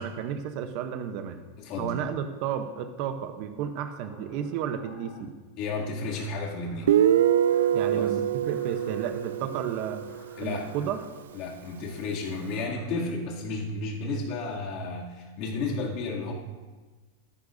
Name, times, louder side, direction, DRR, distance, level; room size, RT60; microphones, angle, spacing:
voice 1, 0.0-1.4 1.8-5.3 7.7-10.1 10.4-11.0, right 8 dB, 40° right, 7 dB, 0.8 m, -32 dB
voice 2, 1.6-2.0 5.6-7.0 7.9-8.0 10.4-10.7 11.3-16.3, left 3 dB, 40° left, -3 dB, 2.5 m, -32 dB
sound 1, 3.6-5.3 6.0-6.9 7.5-7.9 8.4-9.3 10.1-11.0 12.1-12.8, left 2 dB, 15° left, 4.4 m, -52 dB
Guitar, 6.9-10.4, right 10 dB, 85° right, 0.3 m, -24 dB
15.0 x 13.0 x 2.7 m, 1.3 s
supercardioid pair, 165°, 0 cm